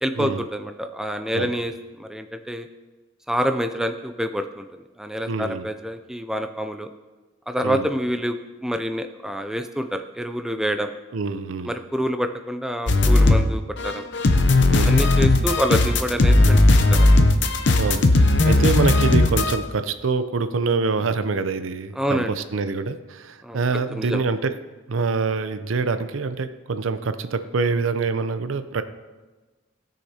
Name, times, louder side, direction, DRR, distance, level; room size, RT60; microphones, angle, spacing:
voice 1, 0.0-1.7 2.0-2.7 3.3-6.9 7.5-8.3 8.6-10.9 11.7-14.1 14.8-16.6 16.9-17.2 22.0-22.4 23.4-23.6 23.9-24.2, equal, 5° right, 7 dB, 0.3 m, -27 dB
voice 2, 5.3-5.6 7.6-7.9 11.1-11.7 14.7-15.0 17.8-24.5 24.9-28.8, right 4 dB, 80° right, 11 dB, 0.6 m, -25 dB
sound 1, 12.9-13.5 13.8-19.6, left 2 dB, 60° left, 0.7 m, -17 dB
16.5 x 6.5 x 2.8 m, 1.2 s
head